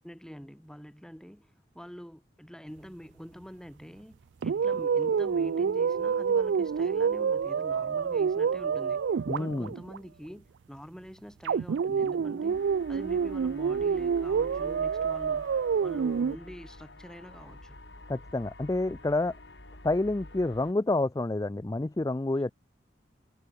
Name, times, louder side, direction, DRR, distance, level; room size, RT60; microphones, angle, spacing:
voice 1, 0.0-17.9, equal, 5° left, 2.8 m, -46 dB
sound 1, 4.4-10.0 11.5-16.4, right 6 dB, 85° right, 0.4 m, -28 dB
voice 2, 9.3-9.7 18.1-19.3 19.8-22.5, left 2 dB, 20° left, 0.4 m, -28 dB
sound 2, 12.5-20.7, left 1 dB, 80° left, 4.3 m, -49 dB
head